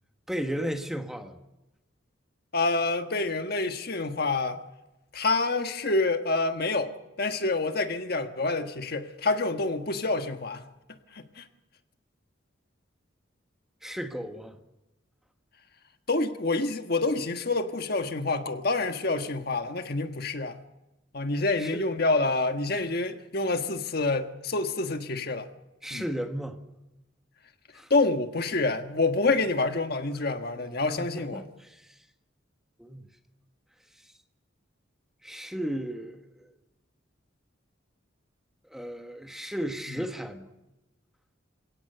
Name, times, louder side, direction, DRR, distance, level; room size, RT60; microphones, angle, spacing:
voice 1, 0.3-1.4 13.8-14.6 21.6-21.9 25.8-26.6 27.7-27.9 31.0-32.0 32.8-33.1 35.2-36.5 38.7-40.5, equal, ahead, 1.3 m, -35 dB
voice 2, 2.5-4.6 5.1-6.9 7.2-10.6 11.1-11.4 16.1-20.6 21.1-25.5 25.9-26.0 27.9-31.4, left 3 dB, 50° left, 1.4 m, -27 dB
29.0 x 17.5 x 6.9 m
head